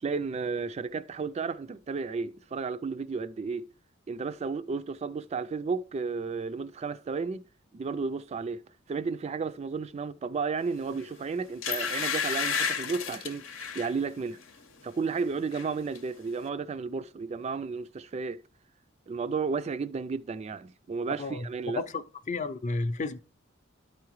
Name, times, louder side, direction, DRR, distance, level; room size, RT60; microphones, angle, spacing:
voice 1, 0.0-3.6 4.1-7.4 7.7-8.6 8.9-13.4 13.7-14.4 14.8-18.4 19.1-21.8, right 4 dB, 30° right, 0.3 m, -33 dB
sound 1, 10.9-11.1 11.6-13.9 14.4-14.6 14.9-15.7 15.9-16.0, left 6 dB, 80° left, 0.8 m, -32 dB
voice 2, 21.8-23.2, left 3 dB, 35° left, 0.4 m, -32 dB
12.0 x 4.7 x 3.1 m
head